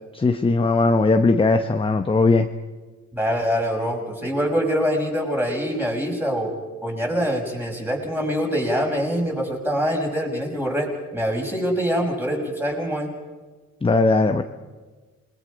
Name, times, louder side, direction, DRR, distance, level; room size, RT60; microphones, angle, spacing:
voice 1, 0.1-2.5 13.8-14.4, left 3 dB, 20° left, 7 dB, 0.9 m, -18 dB
voice 2, 3.1-6.5 6.8-10.9 11.1-13.1, equal, 5° right, 0 dB, 5.8 m, -24 dB
28.0 x 21.0 x 5.2 m, 1.3 s
cardioid pair, 90°, 30 cm